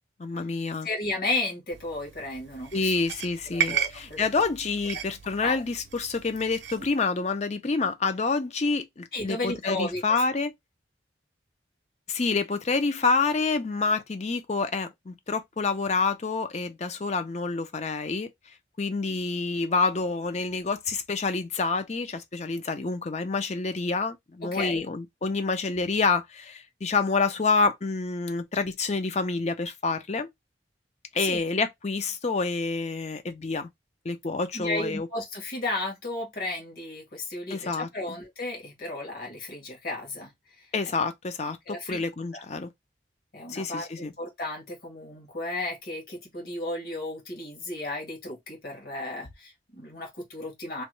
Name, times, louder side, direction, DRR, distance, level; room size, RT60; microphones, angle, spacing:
voice 1, 0.2-0.9 2.7-10.5 12.1-18.3 18.8-30.3 31.1-33.7 34.0-35.1 37.5-38.2 40.7-42.7 43.5-44.1, left 4 dB, 35° left, 0.5 m, -28 dB
voice 2, 0.8-2.9 3.5-4.3 5.4-5.6 9.1-10.0 24.4-24.9 31.2-31.4 34.5-40.7 41.7-42.0 42.3-42.4 43.3-50.8, left 2 dB, 55° left, 1.6 m, -34 dB
sound 1, 1.7-6.9, right 9 dB, 70° right, 0.6 m, -35 dB
3.1 x 2.3 x 3.1 m
head